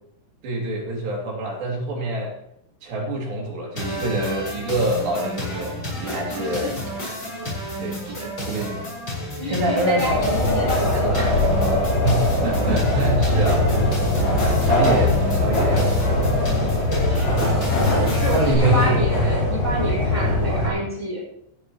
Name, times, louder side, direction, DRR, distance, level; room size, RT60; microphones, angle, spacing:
voice 1, 0.4-2.3 2.8-6.7 7.8-8.2 8.5-8.9 9.5-10.2 12.0-13.7 14.4-16.0 18.3-19.0 20.5-20.8, right 2 dB, 70° right, -1 dB, 5.0 m, -25 dB
sound 1, 3.8-18.5, equal, 25° left, 6.3 m, -31 dB
voice 2, 6.3-6.7 8.0-8.3 9.3-11.5 16.9-17.4 18.1-21.2, equal, 5° left, -3 dB, 5.0 m, -29 dB
sound 2, 10.0-20.7, left 2 dB, 65° left, 8.8 m, -21 dB
17.5 x 14.5 x 3.1 m, 0.72 s
omnidirectional pair, 5.1 m